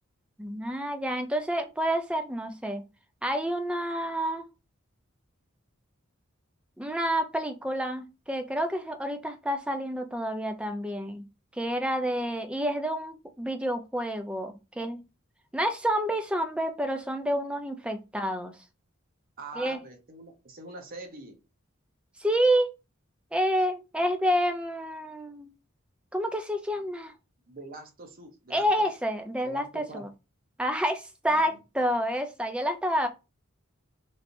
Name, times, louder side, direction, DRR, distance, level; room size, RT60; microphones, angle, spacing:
voice 1, 0.4-2.8 3.2-4.5 6.8-11.3 11.5-15.0 15.5-18.5 19.6-19.8 22.2-22.7 23.3-25.5 26.1-27.1 28.5-30.1 30.6-33.1, equal, 5° right, 0.4 m, -29 dB
voice 2, 19.4-21.4 27.5-28.7 29.4-30.0 31.3-31.6, right 2 dB, 45° right, 0.7 m, -43 dB
3.2 x 2.7 x 2.5 m
head